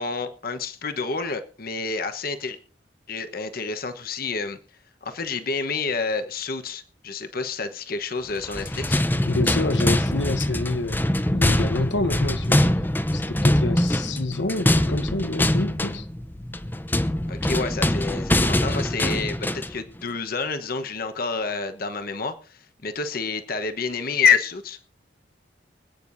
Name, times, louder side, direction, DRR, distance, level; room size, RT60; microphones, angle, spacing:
voice 1, 0.0-2.6 3.1-4.6 5.0-9.0 17.3-24.8, left 5 dB, 50° left, 1.1 m, -28 dB
sound 1, 8.4-19.8, left 1 dB, 10° left, 0.7 m, -23 dB
voice 2, 9.2-12.7 13.1-16.1, left 2 dB, 75° left, 1.0 m, -28 dB
25.5 x 9.2 x 2.7 m
head